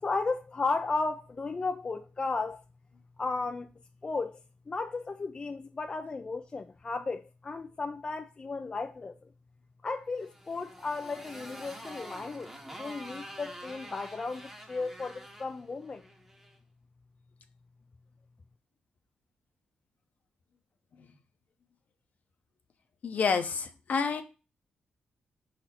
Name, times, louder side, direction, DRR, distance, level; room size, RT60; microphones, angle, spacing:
voice 1, 0.0-2.6 3.2-3.7 4.0-9.3 9.8-16.0, left 3 dB, 30° left, 0.4 m, -34 dB
Motorcycle, 10.1-16.6, right 1 dB, 10° right, 1.0 m, -47 dB
voice 2, 23.0-24.2, left 5 dB, 55° left, 0.9 m, -28 dB
5.6 x 4.1 x 4.3 m
cardioid pair, 115°, 3 cm